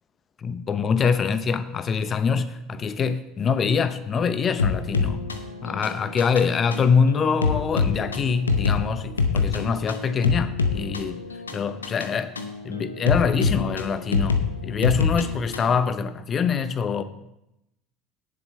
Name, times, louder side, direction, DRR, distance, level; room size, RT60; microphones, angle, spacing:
voice 1, 0.4-5.2 5.6-11.2 11.5-12.3 12.6-17.0, left 6 dB, 35° left, 0.8 m, -24 dB
sound 1, 4.6-15.8, left 5 dB, 80° left, 0.8 m, -26 dB
17.5 x 7.3 x 3.3 m
figure-of-eight pair, 70°, 0 cm